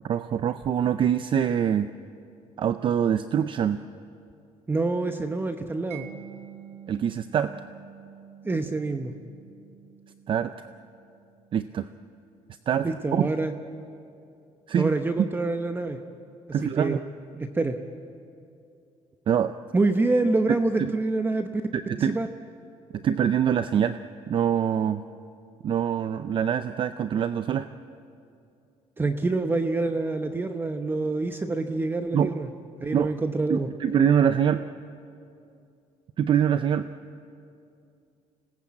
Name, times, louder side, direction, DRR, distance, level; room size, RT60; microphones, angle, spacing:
voice 1, 0.0-1.9 2.6-3.8 6.9-7.5 10.3-10.5 11.5-11.9 12.7-13.3 14.7-14.9 16.5-17.0 19.3-19.5 20.8-20.9 21.7-22.2 22.9-25.0 25.6-27.7 32.1-32.3 32.9-33.1 33.5-34.7 36.2-36.9, right 8 dB, 45° right, 11 dB, 0.5 m, -24 dB
voice 2, 4.7-6.1 8.4-9.1 12.8-13.5 14.8-16.0 16.6-17.0 17.3-17.8 19.7-21.6 22.0-22.3 29.0-32.5 32.8-33.7, right 3 dB, 15° right, 7 dB, 0.9 m, -26 dB
Mallet percussion, 5.9-12.7, right 10 dB, 60° right, 1.6 m, -48 dB
26.0 x 19.0 x 8.6 m, 2.6 s
cardioid pair, 135°, 12 cm